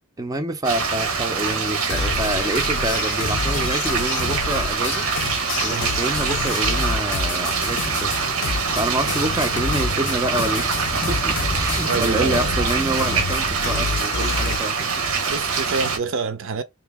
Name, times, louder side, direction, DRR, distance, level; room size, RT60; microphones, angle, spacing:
voice 1, 0.2-5.0 5.6-8.2 8.8-15.0, right 2 dB, 15° right, 0.5 m, -27 dB
sound 1, 0.6-16.0, right 5 dB, 90° right, 0.8 m, -24 dB
sound 2, 1.9-14.6, left 5 dB, 60° left, 0.5 m, -29 dB
sound 3, 6.7-13.7, equal, 15° left, 0.7 m, -34 dB
voice 2, 11.8-12.5 15.3-16.6, right 4 dB, 65° right, 0.5 m, -27 dB
3.0 x 2.7 x 3.4 m
head